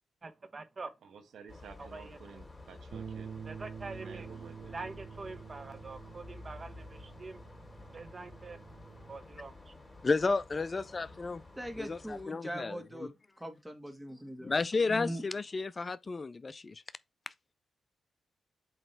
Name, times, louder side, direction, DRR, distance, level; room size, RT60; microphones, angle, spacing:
voice 1, 0.2-0.9 1.8-2.2 3.5-4.3 4.7-7.4 7.9-8.6 9.1-9.7, right 3 dB, 40° right, 0.9 m, -45 dB
voice 2, 1.0-3.3 3.8-5.0, right 6 dB, 80° right, 1.2 m, -52 dB
sound 1, 1.5-12.2, left 2 dB, 20° left, 3.1 m, -52 dB
sound 2, 2.9-9.2, right 7 dB, 60° right, 0.4 m, -48 dB
voice 3, 10.0-11.4 11.8-13.1 14.4-16.8, left 4 dB, 35° left, 0.4 m, -32 dB
voice 4, 11.6-13.1 13.4-14.5 14.8-15.2, equal, 10° right, 1.7 m, -41 dB
7.6 x 3.0 x 4.4 m
cardioid pair, 65°, 0 cm